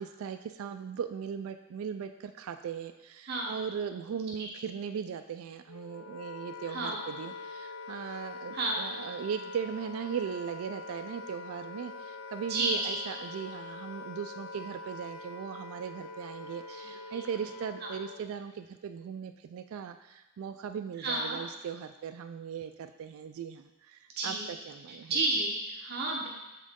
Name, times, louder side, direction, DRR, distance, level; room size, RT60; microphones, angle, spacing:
voice 1, 0.0-25.2, right 7 dB, 70° right, 9 dB, 0.3 m, -38 dB
Wind instrument woodwind instrument, 5.7-18.3, left 3 dB, 70° left, 0.3 m, -44 dB
voice 2, 6.7-7.0 8.5-8.8 12.5-13.0 16.8-17.2 17.8-17.9 21.0-21.4 24.2-24.5 24.9-26.3, right 2 dB, 45° right, -2 dB, 0.8 m, -32 dB
7.4 x 3.7 x 3.6 m, 0.97 s
head